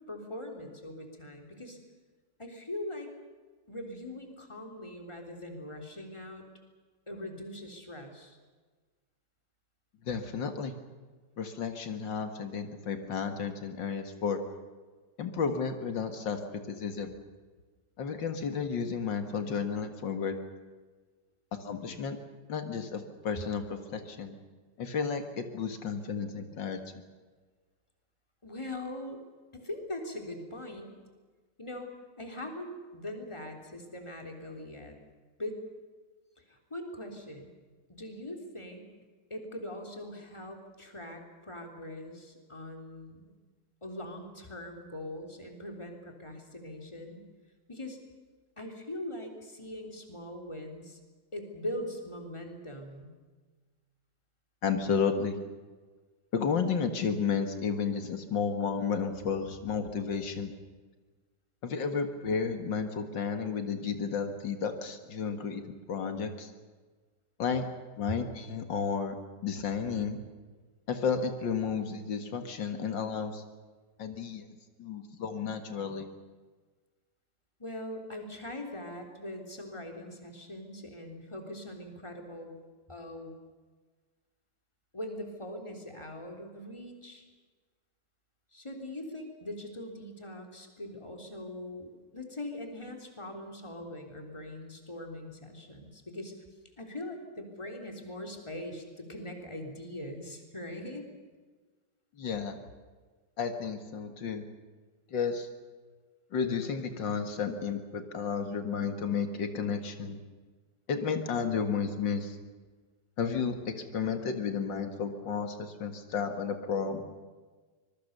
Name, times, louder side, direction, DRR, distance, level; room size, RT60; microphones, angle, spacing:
voice 1, 0.1-1.8 2.4-3.1 3.7-6.4 7.1-8.4 28.4-29.2 29.5-30.9 31.6-35.0 35.4-35.6 36.5-37.5 37.9-38.9 39.3-43.3 43.8-47.3 47.7-48.0 48.6-51.0 51.3-53.1 68.1-68.2 77.6-82.6 82.9-83.3 84.9-87.2 88.5-96.3 96.8-101.0, left 1 dB, 15° left, 3 dB, 3.5 m, -41 dB
voice 2, 10.0-10.7 11.4-14.4 15.2-17.1 18.0-20.4 21.5-22.2 22.5-24.3 24.8-27.0 54.6-55.4 56.3-60.5 61.6-66.5 67.4-67.7 68.0-69.2 69.4-70.2 70.9-73.4 74.0-74.4 74.8-76.1 102.2-102.6 103.4-104.4 105.1-105.5 106.3-110.2 110.9-112.4 113.2-117.0, left 6 dB, 90° left, 7 dB, 2.5 m, -32 dB
25.0 x 22.0 x 6.8 m, 1.4 s
omnidirectional pair, 1.9 m